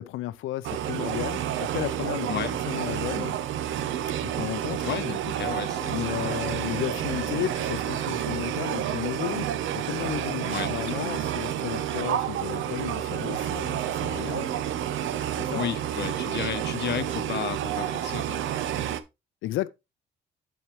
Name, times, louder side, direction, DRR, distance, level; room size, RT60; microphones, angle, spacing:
voice 1, 0.0-3.4 4.2-4.9 5.8-14.6 15.3-15.7 19.4-19.7, left 15 dB, 85° left, 0.5 m, -33 dB
sound 1, 0.6-19.0, right 10 dB, 80° right, 0.7 m, -30 dB
voice 2, 4.8-6.8 7.1-7.3 10.5-11.1 15.5-18.4, left 9 dB, 60° left, 0.8 m, -33 dB
7.2 x 7.2 x 3.1 m
cardioid pair, 90°, 20 cm